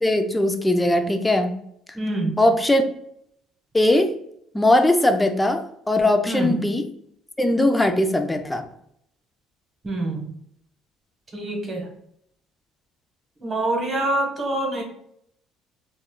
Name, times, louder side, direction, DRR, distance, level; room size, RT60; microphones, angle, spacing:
voice 1, 0.0-1.6 2.4-2.9 3.7-4.1 4.5-6.8 7.4-8.6, left 1 dB, 10° left, 6 dB, 0.4 m, -20 dB
voice 2, 1.9-2.4 6.2-6.6 9.8-10.3 11.3-11.9 13.4-14.8, right 2 dB, 30° right, 1 dB, 0.9 m, -25 dB
2.3 x 2.1 x 3.6 m, 0.72 s
supercardioid pair, 90°, 0 cm